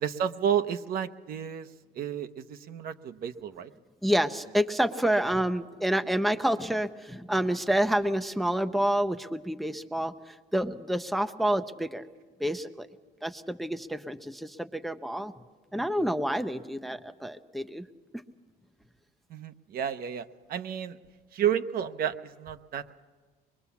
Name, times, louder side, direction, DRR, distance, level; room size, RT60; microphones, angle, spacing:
voice 1, 0.0-1.7 1.9-3.7 19.3-21.0 21.3-23.0, right 9 dB, 55° right, 9 dB, 0.9 m, -31 dB
voice 2, 4.0-12.0 12.4-12.9 13.2-15.3 15.7-17.9, right 1 dB, ahead, 9 dB, 0.6 m, -28 dB
23.0 x 22.0 x 7.1 m, 1.4 s
cardioid pair, 115°, 18 cm